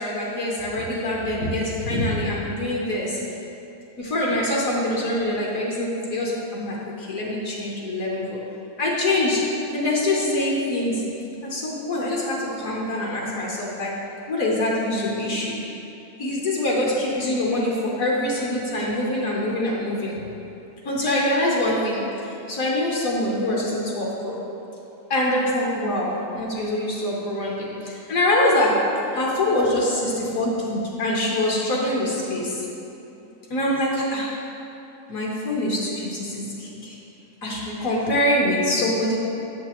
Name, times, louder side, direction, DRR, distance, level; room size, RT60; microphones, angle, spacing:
voice 1, 0.0-3.2 4.0-8.4 8.8-9.4 9.7-11.0 11.4-13.9 14.3-15.7 16.2-20.2 20.8-24.4 25.1-28.8 29.1-32.6 33.5-34.4 35.1-36.9 37.4-39.2, left 1 dB, 65° left, -4 dB, 1.3 m, -24 dB
8.0 x 6.7 x 3.0 m, 2.9 s
omnidirectional pair, 1.6 m